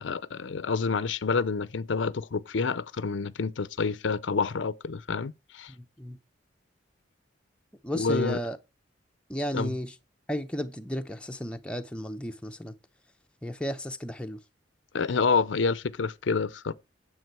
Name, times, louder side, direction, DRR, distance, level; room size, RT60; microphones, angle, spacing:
voice 1, 0.0-5.7 7.9-8.4 9.5-9.7 14.9-16.7, left 4 dB, 85° left, 0.6 m, -28 dB
voice 2, 5.7-6.2 7.8-8.6 9.3-9.9 10.3-12.7 13.4-14.4, equal, 5° left, 0.6 m, -33 dB
9.3 x 7.7 x 4.5 m
head